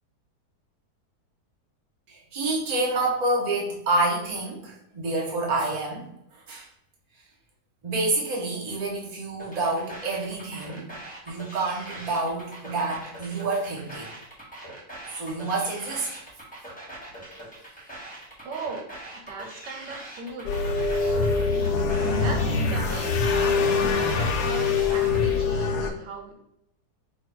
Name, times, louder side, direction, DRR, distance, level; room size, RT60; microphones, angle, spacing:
voice 1, 2.1-6.7 7.8-10.9 11.3-14.1 15.1-16.2, right 2 dB, 30° right, -3 dB, 0.9 m, -28 dB
sound 1, 9.4-25.4, right 1 dB, 5° left, 1.0 m, -42 dB
voice 2, 18.4-20.6 20.9-21.5 22.1-26.5, right 3 dB, 85° right, 2 dB, 1.5 m, -38 dB
sound 2, 20.5-25.9, left 4 dB, 75° left, 1.1 m, -24 dB
4.4 x 2.6 x 4.5 m, 0.78 s
omnidirectional pair, 1.9 m